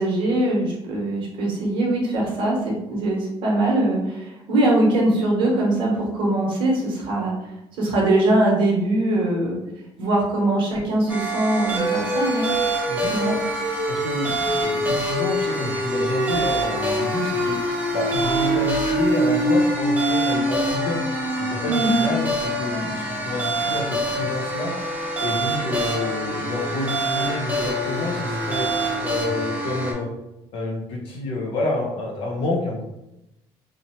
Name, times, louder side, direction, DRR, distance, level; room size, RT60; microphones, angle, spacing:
voice 1, 0.0-7.3 7.8-9.6 10.0-12.5 13.1-13.4 21.7-22.0, right 1 dB, 55° right, -2 dB, 0.9 m, -22 dB
sound 1, 11.1-29.9, right 1 dB, 15° right, 0.5 m, -24 dB
voice 2, 13.9-17.6 17.9-21.0 21.4-24.7 25.2-28.7 29.0-30.1 30.5-32.8, left 2 dB, 60° left, 0 dB, 0.6 m, -28 dB
3.0 x 2.0 x 2.8 m, 0.89 s
cardioid pair, 175°, 10 cm